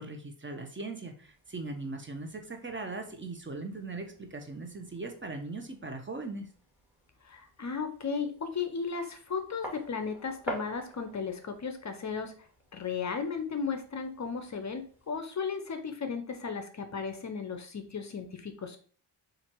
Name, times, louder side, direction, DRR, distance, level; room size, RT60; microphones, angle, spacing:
voice 1, 0.0-6.5, right 3 dB, 25° right, 5 dB, 0.8 m, -39 dB
sound 1, 1.2-15.2, equal, 5° right, 1.8 m, -49 dB
voice 2, 7.2-12.4 12.7-18.8, left 5 dB, 35° left, 7 dB, 0.7 m, -35 dB
4.3 x 2.6 x 4.4 m, 0.44 s
cardioid pair, 70°, 48 cm